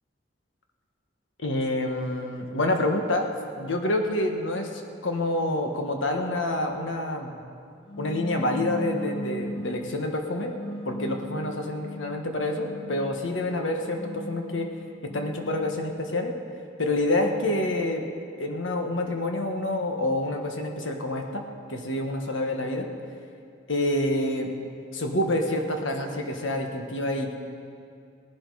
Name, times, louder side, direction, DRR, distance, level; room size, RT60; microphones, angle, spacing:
voice 1, 1.4-3.3 3.6-7.4 8.0-10.5 10.8-14.7 15.1-16.3 16.8-18.1 18.4-22.9 23.7-24.5 24.9-27.4, left 1 dB, 80° left, 3 dB, 1.4 m, -27 dB
sound 1, 7.9-9.9 10.5-13.2 13.8-16.1, left 1 dB, 30° left, 0.6 m, -38 dB
18.5 x 11.0 x 4.8 m, 2.4 s
head